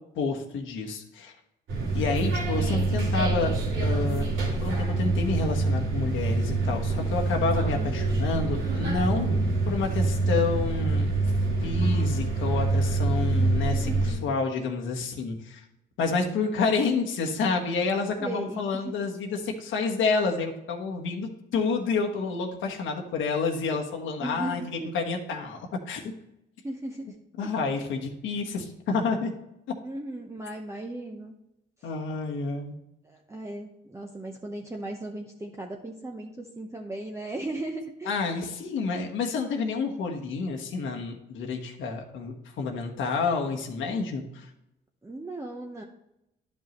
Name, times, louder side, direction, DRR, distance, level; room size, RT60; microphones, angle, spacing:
voice 1, 0.1-1.3 1.9-3.5 3.8-4.3 4.6-9.3 9.7-11.1 11.6-15.6 16.0-26.1 27.4-29.3 31.8-32.8 38.1-44.5, left 4 dB, 80° left, 2 dB, 1.3 m, -29 dB
sound 1, 1.7-14.1, right 2 dB, 85° right, 2.8 m, -26 dB
voice 2, 13.8-14.3 18.2-18.9 24.2-24.9 26.6-27.1 27.4-27.8 29.8-31.4 33.0-38.2 45.0-45.8, right 2 dB, 15° right, 1 dB, 0.8 m, -37 dB
11.0 x 5.4 x 3.1 m, 0.86 s
cardioid pair, 90°, 20 cm